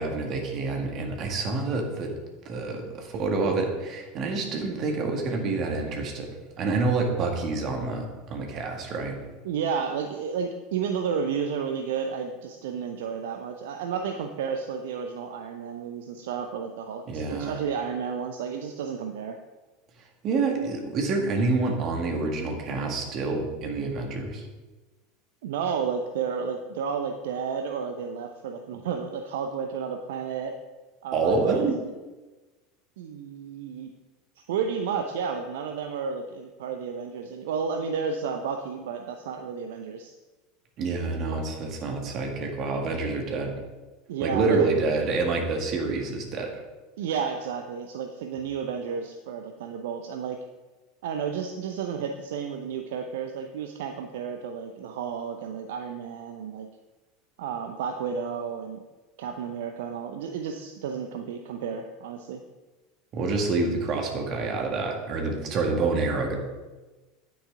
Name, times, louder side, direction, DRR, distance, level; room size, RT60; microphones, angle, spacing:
voice 1, 0.0-2.2 2.5-9.2 17.1-17.6 20.2-24.5 31.1-31.7 40.8-43.5 44.2-46.5 63.1-66.4, right 3 dB, 45° right, 2 dB, 2.0 m, -27 dB
voice 2, 9.4-19.4 25.4-30.6 31.0-31.7 33.0-33.9 34.5-40.1 44.1-44.6 47.0-50.4 51.0-56.7 57.4-58.8 59.2-62.4, right 6 dB, 65° right, 5 dB, 0.6 m, -32 dB
9.8 x 9.2 x 3.7 m, 1.2 s
figure-of-eight pair, 75°, 0 cm